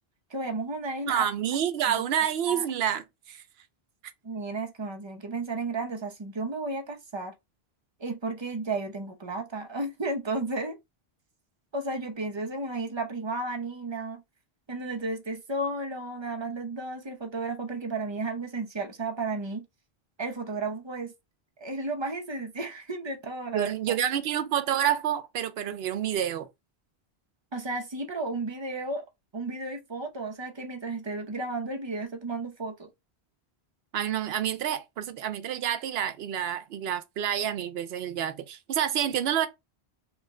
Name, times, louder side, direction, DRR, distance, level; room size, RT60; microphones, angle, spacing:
voice 1, 0.3-1.3 1.9-2.1 2.5-2.7 4.2-7.3 8.0-10.7 11.7-14.2 14.7-19.6 20.2-21.1 21.6-24.0 27.5-29.1 29.3-32.9, right 2 dB, 35° right, 0.6 m, -33 dB
voice 2, 1.1-3.4 23.5-26.5 33.9-39.5, right 10 dB, 75° right, 0.8 m, -28 dB
3.1 x 2.1 x 3.5 m
omnidirectional pair, 1.1 m